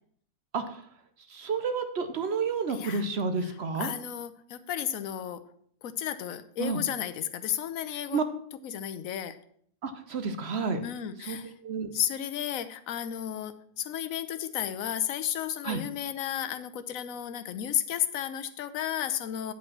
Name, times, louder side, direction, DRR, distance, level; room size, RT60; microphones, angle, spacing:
voice 1, 1.3-3.9 6.6-6.8 8.1-8.2 9.8-10.9 11.2-11.4 11.6-11.9 15.6-15.8, right 4 dB, 55° right, 8 dB, 0.9 m, -30 dB
voice 2, 2.7-3.1 3.4-5.4 5.8-8.2 8.6-9.4 10.8-11.5 11.9-19.5, left 10 dB, 80° left, 11 dB, 1.1 m, -33 dB
8.3 x 5.2 x 5.9 m, 0.63 s
omnidirectional pair, 1.4 m